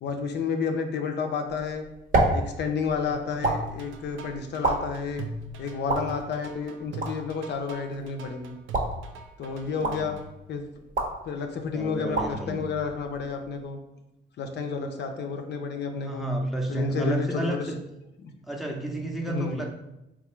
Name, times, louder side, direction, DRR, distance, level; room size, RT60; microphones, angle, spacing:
voice 1, 0.0-1.9 2.3-5.3 5.6-8.6 9.4-10.2 10.5-10.6 11.2-13.8 14.4-16.3 16.7-17.7 18.2-18.3 19.3-19.6, left 5 dB, 60° left, 5 dB, 0.5 m, -31 dB
sound 1, 1.5-13.6, right 2 dB, 45° right, 0.7 m, -32 dB
sound 2, 3.4-10.2, right 3 dB, 80° right, 0.5 m, -40 dB
voice 2, 9.8-10.1 11.7-12.7 16.0-17.8 18.5-19.7, right 1 dB, ahead, 0 dB, 0.5 m, -31 dB
3.8 x 2.4 x 3.0 m, 0.91 s
cardioid pair, 90°, 20 cm